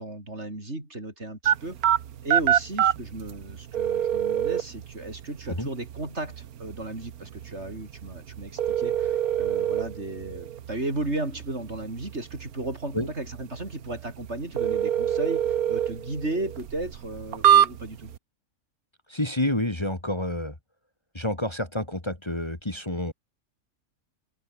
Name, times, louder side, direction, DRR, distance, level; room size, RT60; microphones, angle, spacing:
voice 1, 0.0-1.9 2.2-18.1, right 2 dB, 50° right, 6.0 m, -35 dB
sound 1, 1.4-18.2, right 10 dB, 90° right, 1.4 m, -27 dB
voice 2, 19.1-20.6 21.1-23.1, left 1 dB, 20° left, 2.4 m, -29 dB
omnidirectional pair, 1.5 m